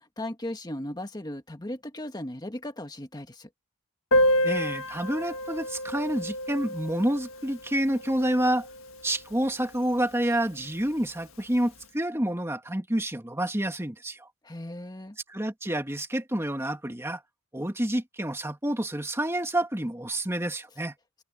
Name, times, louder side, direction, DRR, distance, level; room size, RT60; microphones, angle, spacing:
voice 1, 0.0-3.5 14.4-15.2, left 1 dB, 20° left, 1.7 m, -37 dB
Piano, 4.1-9.5 9.7-9.8 10.0-10.2 10.5-10.6 11.4-11.5, left 1 dB, 70° left, 1.7 m, -29 dB
voice 2, 4.4-8.7 9.0-14.3 15.3-17.2 17.5-20.9, right 1 dB, 10° right, 2.0 m, -28 dB
open air
head